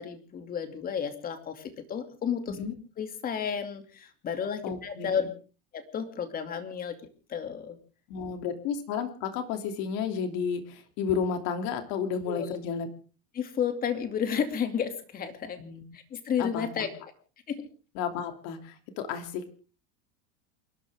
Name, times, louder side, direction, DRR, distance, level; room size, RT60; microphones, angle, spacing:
voice 1, 0.0-2.6 3.0-5.3 5.7-7.0 7.3-7.8 12.2-12.6 13.3-15.6 15.9-16.9 17.5-17.7, left 7 dB, 25° left, 7 dB, 2.6 m, -32 dB
voice 2, 4.6-5.2 8.1-12.9 15.6-15.8 16.4-16.7 17.9-19.5, left 6 dB, 55° left, 6 dB, 2.9 m, -32 dB
28.5 x 12.0 x 3.6 m, 0.37 s
supercardioid pair, 135°, 33 cm